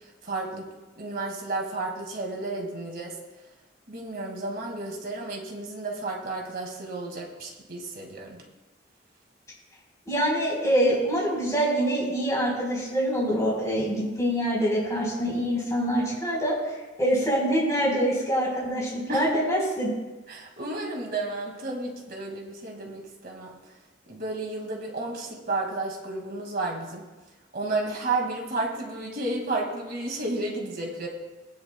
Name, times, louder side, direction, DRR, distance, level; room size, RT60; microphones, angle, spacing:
voice 1, 0.2-0.7 1.0-3.2 3.9-8.4 19.1-19.3 20.3-23.6 24.1-27.1 27.5-31.1, right 2 dB, 50° right, 0 dB, 2.0 m, -32 dB
voice 2, 10.1-16.5 17.0-19.9, equal, 20° left, -5 dB, 4.0 m, -25 dB
18.5 x 9.8 x 2.2 m, 1.2 s
head